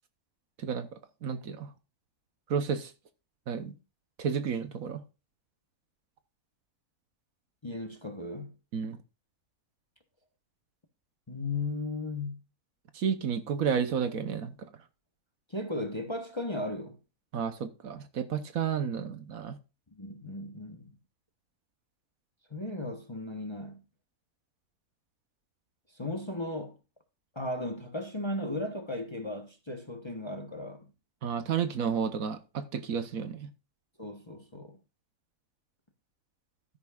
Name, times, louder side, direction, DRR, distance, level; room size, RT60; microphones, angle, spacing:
voice 1, 0.6-1.7 2.5-2.9 3.5-3.7 4.2-5.0 8.7-9.0 12.9-14.5 17.3-19.6 31.2-33.5, right 7 dB, 65° right, 1.4 m, -31 dB
voice 2, 7.6-8.5 11.3-12.4 15.5-17.0 19.9-21.0 22.5-23.8 25.9-26.8 27.3-30.9 34.0-34.8, left 2 dB, 20° left, 1.0 m, -36 dB
13.0 x 10.5 x 2.4 m
omnidirectional pair, 1.6 m